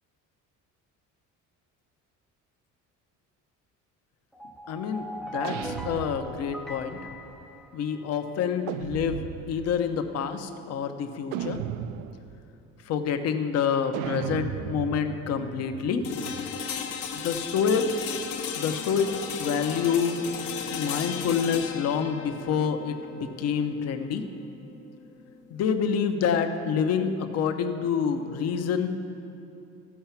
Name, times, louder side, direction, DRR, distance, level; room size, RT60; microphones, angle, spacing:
sound 1, 4.3-8.3, equal, ahead, 0.4 m, -40 dB
voice 1, 4.7-7.0 7.7-9.2 9.5-11.6 12.9-16.0 17.1-17.9 18.5-20.3 20.7-24.2 25.5-28.9, left 7 dB, 55° left, 7 dB, 0.8 m, -27 dB
sound 2, 5.4-6.7 8.7-9.8 11.3-12.4 13.9-16.6, right 10 dB, 85° right, 0.5 m, -36 dB
sound 3, 16.0-25.9, left 7 dB, 80° left, 1.1 m, -36 dB
15.0 x 5.8 x 5.8 m, 3.0 s
cardioid pair, 155°, 30 cm